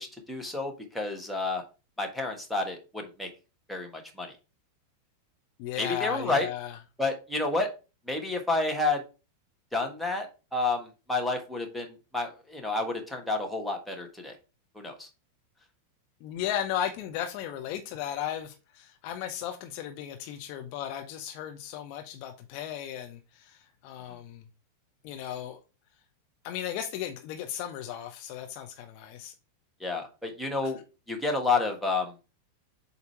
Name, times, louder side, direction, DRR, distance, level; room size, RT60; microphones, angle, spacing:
voice 1, 0.0-1.6 2.0-3.3 3.7-4.3 5.8-6.5 7.0-7.7 8.1-9.0 9.7-14.3 14.7-15.1 29.8-30.8 31.1-32.1, left 3 dB, ahead, 1.4 m, -30 dB
voice 2, 5.6-6.8 16.2-24.5 25.0-25.6 26.4-29.3 30.6-30.7, left 10 dB, 45° left, 0.7 m, -35 dB
7.8 x 2.8 x 4.5 m
figure-of-eight pair, 90°, 0 cm